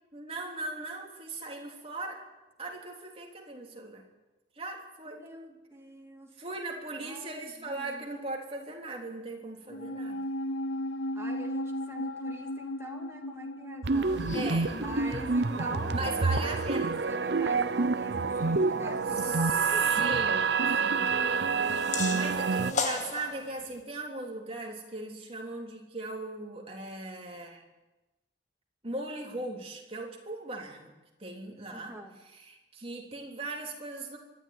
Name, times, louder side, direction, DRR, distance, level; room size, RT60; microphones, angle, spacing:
voice 1, 0.1-2.2 2.6-4.0 4.6-5.2 6.4-10.2 14.3-14.8 15.9-16.9 19.2-19.7 19.9-21.1 22.1-27.6 28.8-30.9 31.2-31.9 32.3-34.2, right 2 dB, 30° right, 1 dB, 3.4 m, -38 dB
voice 2, 5.0-6.3 7.0-8.1 11.1-14.3 14.7-20.4 21.0-22.6 31.7-32.2, right 1 dB, 15° right, 1 dB, 2.5 m, -44 dB
sound 1, 9.7-16.3 16.5-16.6, left 1 dB, 80° left, 0.7 m, -37 dB
sound 2, 13.8-22.7, right 4 dB, 60° right, 0.7 m, -28 dB
sound 3, 13.9-23.8, left 4 dB, 40° left, 1.8 m, -40 dB
24.5 x 12.0 x 9.7 m, 1.1 s
head